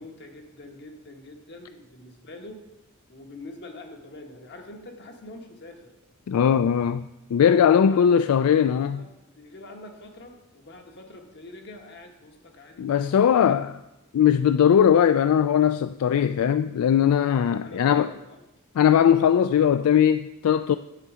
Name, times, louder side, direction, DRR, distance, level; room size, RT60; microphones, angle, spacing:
voice 1, 0.0-2.6 3.1-6.0 7.3-8.7 8.9-9.1 9.3-13.6 17.6-18.5, left 2 dB, 50° left, 1.3 m, -44 dB
voice 2, 6.3-9.0 12.8-13.8 14.1-18.1 18.8-20.8, left 8 dB, 80° left, 0.3 m, -20 dB
9.6 x 7.4 x 4.9 m
head